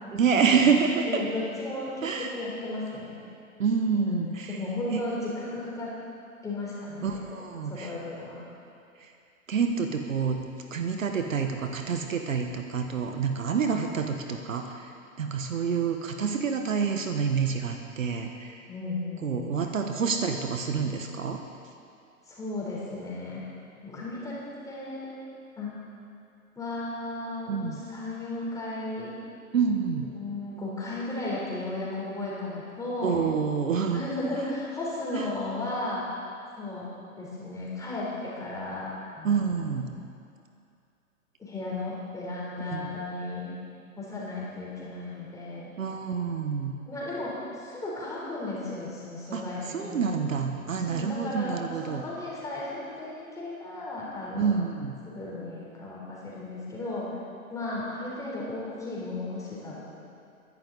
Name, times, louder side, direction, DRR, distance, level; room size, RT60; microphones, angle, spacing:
voice 1, 0.1-1.2 2.0-2.3 3.6-4.6 4.9-5.0 7.0-8.0 9.0-9.1 9.5-14.9 15.2-18.6 19.2-21.4 27.5-27.8 29.5-30.1 33.0-34.0 35.1-35.2 39.2-39.9 42.7-43.0 45.8-46.8 49.3-52.0 54.3-55.0, right 6 dB, 65° right, 5 dB, 1.4 m, -28 dB
voice 2, 1.0-3.2 3.9-5.9 6.4-7.3 7.7-8.4 18.7-19.5 22.3-23.4 23.8-24.4 24.6-25.1 25.6-25.8 26.6-29.1 30.1-33.2 33.9-36.0 36.6-36.9 37.2-39.8 41.4-43.5 44.0-45.7 46.9-50.1 50.8-54.6 55.1-57.2 57.5-60.0, left 2 dB, 10° left, -6 dB, 3.7 m, -35 dB
22.5 x 11.0 x 4.0 m, 2.5 s
figure-of-eight pair, 125°, 43 cm